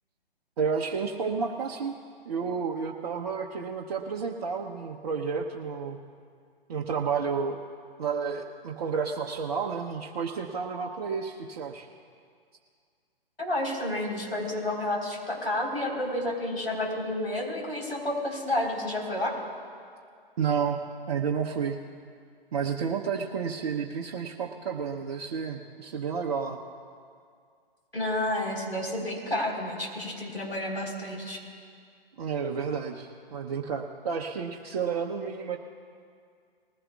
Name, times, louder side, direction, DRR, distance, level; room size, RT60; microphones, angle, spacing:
voice 1, 0.6-2.0 2.2-6.0 6.7-7.6 8.0-11.9 20.4-21.8 22.5-26.6 32.2-35.6, right 6 dB, 40° right, -2 dB, 0.9 m, -31 dB
voice 2, 13.4-19.3 27.9-31.4, left 1 dB, 90° left, -3 dB, 4.1 m, -30 dB
20.0 x 15.5 x 2.4 m, 2.2 s
figure-of-eight pair, 125°, 30 cm